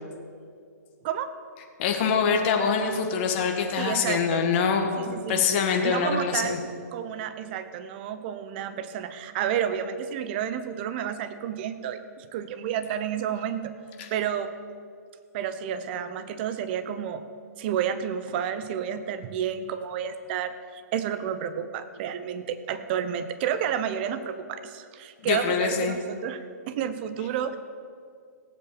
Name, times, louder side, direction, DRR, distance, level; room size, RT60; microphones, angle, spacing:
voice 1, 1.8-6.6 14.0-14.1 25.2-26.0, left 6 dB, 35° left, 4 dB, 1.7 m, -25 dB
voice 2, 3.8-4.4 5.0-5.5 5.8-6.6 6.9-13.7 14.1-14.5 15.3-17.2 17.6-27.6, right 9 dB, 35° right, 10 dB, 0.8 m, -30 dB
17.0 x 7.8 x 6.7 m, 2.2 s
hypercardioid pair, 155°, 10 cm